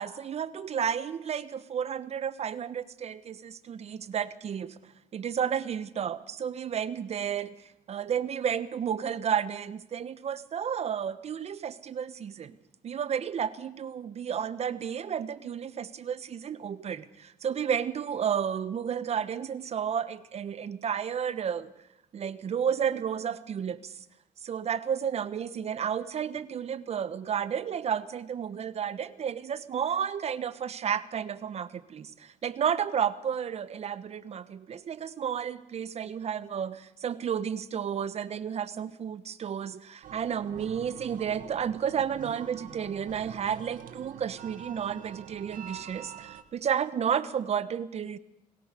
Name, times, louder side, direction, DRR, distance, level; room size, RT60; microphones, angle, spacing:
voice 1, 0.0-4.8 5.1-12.5 12.8-21.7 22.1-23.9 24.4-48.2, right 8 dB, 45° right, 16 dB, 1.1 m, -32 dB
sound 1, 40.0-46.4, right 9 dB, 65° right, 1.6 m, -45 dB
22.0 x 18.0 x 6.8 m, 0.84 s
cardioid pair, 105°, 15 cm